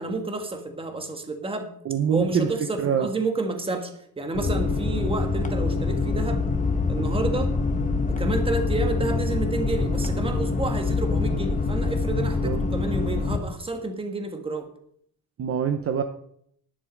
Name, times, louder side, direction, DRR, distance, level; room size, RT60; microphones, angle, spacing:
voice 1, 0.0-1.7 2.1-6.5 6.9-7.5 8.2-14.7, right 3 dB, 15° right, 6 dB, 1.4 m, -30 dB
voice 2, 1.9-2.5 2.8-3.1 12.4-12.6 15.4-16.0, right 7 dB, 40° right, 7 dB, 0.8 m, -24 dB
sound 1, 4.3-13.4, left 4 dB, 20° left, 1.2 m, -25 dB
11.0 x 10.5 x 5.2 m, 0.67 s
cardioid pair, 175°, 36 cm